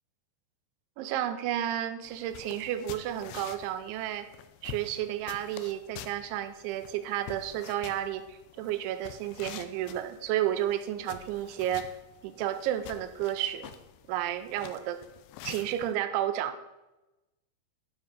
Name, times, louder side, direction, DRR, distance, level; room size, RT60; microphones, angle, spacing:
voice 1, 1.0-4.3 4.6-11.9 12.2-13.7 14.1-15.0 15.4-16.6, right 12 dB, 85° right, 10 dB, 3.0 m, -32 dB
sound 1, 2.0-15.9, left 10 dB, 80° left, 2.8 m, -48 dB
11.5 x 6.2 x 6.4 m, 1.0 s
omnidirectional pair, 5.4 m